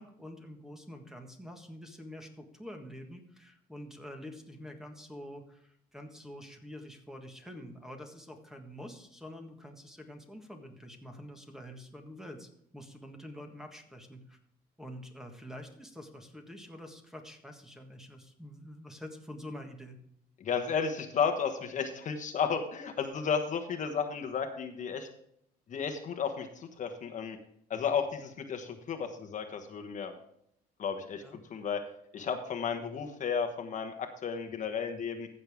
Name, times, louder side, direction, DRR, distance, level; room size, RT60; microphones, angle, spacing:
voice 1, 0.0-14.4 14.8-20.0 31.2-31.4, equal, 5° right, 4 dB, 1.6 m, -47 dB
voice 2, 20.4-25.1 25.7-27.4 27.7-30.2 30.8-31.2 31.5-31.8 32.1-35.3, left 6 dB, 45° left, 6 dB, 1.3 m, -33 dB
15.0 x 6.7 x 3.6 m, 0.72 s
cardioid pair, 110°, 17 cm